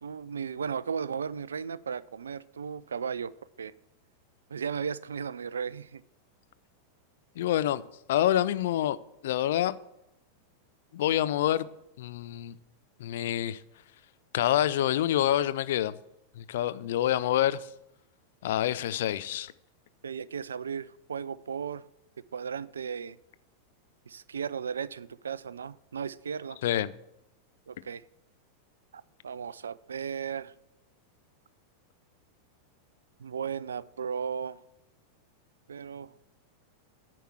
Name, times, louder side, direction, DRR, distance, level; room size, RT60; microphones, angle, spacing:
voice 1, 0.0-3.3 3.6-3.7 4.5-6.0 20.0-21.8 22.3-23.2 24.1-26.6 27.7-28.0 28.9-30.5 33.2-34.6 35.7-36.1, right 7 dB, 70° right, 0.3 m, -35 dB
voice 2, 7.4-7.8 8.1-9.0 9.2-9.7 10.9-11.7 12.0-12.6 13.0-13.6 14.3-15.9 16.4-17.6 18.4-19.5 26.6-26.9, left 12 dB, 55° left, 0.4 m, -27 dB
10.0 x 4.6 x 7.6 m
figure-of-eight pair, 90°, 0 cm